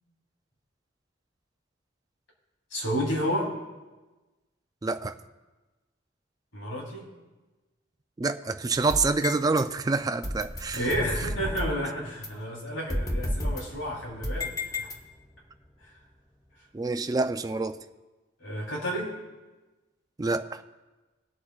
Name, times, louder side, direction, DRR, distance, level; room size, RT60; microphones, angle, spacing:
voice 1, 2.7-3.5 6.5-7.1 10.7-14.9 15.8-15.9 18.4-19.1, equal, 80° left, -3 dB, 3.5 m, -31 dB
voice 2, 4.8-5.1 8.2-10.9 16.7-17.8 20.2-20.6, right 3 dB, 20° right, 8 dB, 0.3 m, -27 dB
sound 1, 8.7-9.6 10.2-11.8 12.2-12.3 12.9-15.4, left 1 dB, 20° left, 1.0 m, -32 dB
21.0 x 8.4 x 2.4 m, 1.2 s
head